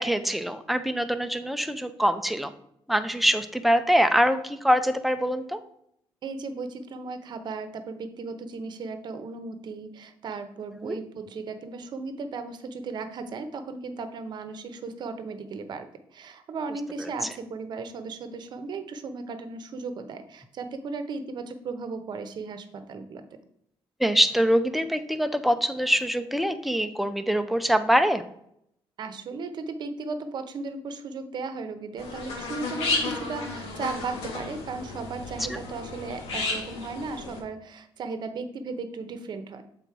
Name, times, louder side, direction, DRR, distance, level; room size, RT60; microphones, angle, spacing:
voice 1, 0.0-2.5 2.9-5.6 10.8-11.0 24.0-28.2 35.5-35.6, equal, ahead, 9 dB, 0.5 m, -24 dB
voice 2, 6.2-23.2 29.0-39.6, right 4 dB, 50° right, 9 dB, 0.8 m, -36 dB
sound 1, 32.0-37.4, left 3 dB, 90° left, 1.6 m, -33 dB
7.3 x 3.9 x 4.6 m, 0.72 s
cardioid pair, 135°, 10 cm